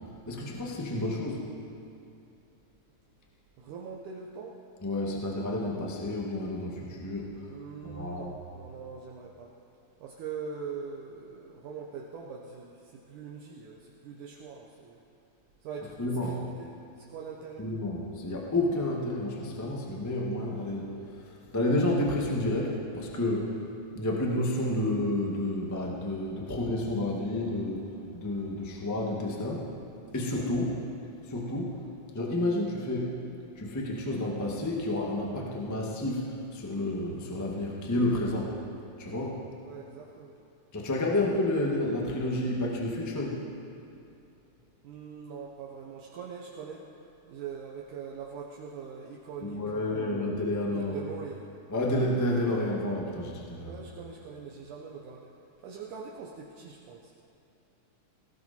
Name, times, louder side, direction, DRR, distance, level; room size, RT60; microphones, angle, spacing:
voice 1, 0.3-1.5 4.8-7.5 7.8-8.3 16.0-16.4 17.6-23.6 23.9-29.7 30.1-30.8 31.2-31.8 32.1-33.2 33.5-38.5 39.0-39.4 40.7-43.4 49.4-51.0 51.7-53.8, left 1 dB, 15° left, -2 dB, 0.6 m, -30 dB
voice 2, 3.6-4.5 7.5-9.5 10.0-15.0 15.6-17.7 39.6-40.4 44.8-46.9 47.3-50.1 50.7-51.5 53.7-55.3 55.6-57.1, right 6 dB, 70° right, -2 dB, 2.3 m, -42 dB
18.0 x 17.0 x 4.4 m, 2.7 s
omnidirectional pair, 4.0 m